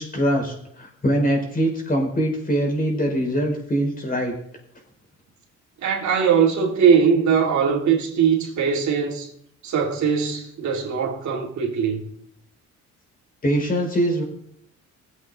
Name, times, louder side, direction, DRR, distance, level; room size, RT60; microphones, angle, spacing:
voice 1, 0.0-4.3 13.4-14.2, right 1 dB, 30° left, 5.1 m, -23 dB
voice 2, 5.8-9.3 9.6-12.0, right 6 dB, 70° right, 3.1 m, -20 dB
18.0 x 8.2 x 4.0 m
cardioid pair, 90°, 30 cm